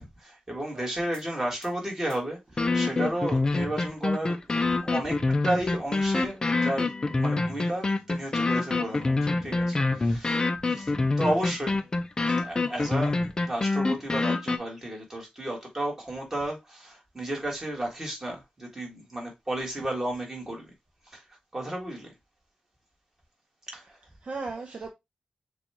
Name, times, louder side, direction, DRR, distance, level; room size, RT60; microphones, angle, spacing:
voice 1, 0.0-4.4 4.7-10.9 11.2-11.8 12.3-20.6 21.1-21.2 21.5-22.1 23.7-24.0, right 1 dB, 15° right, 1.8 m, -33 dB
sound 1, 1.1-1.2 1.6-1.7 2.1-2.2 2.6-14.6, left 3 dB, 30° left, 0.5 m, -26 dB
voice 2, 24.2-24.9, right 3 dB, 45° right, 0.6 m, -37 dB
6.7 x 2.4 x 2.9 m
wide cardioid pair, 145°, 3 cm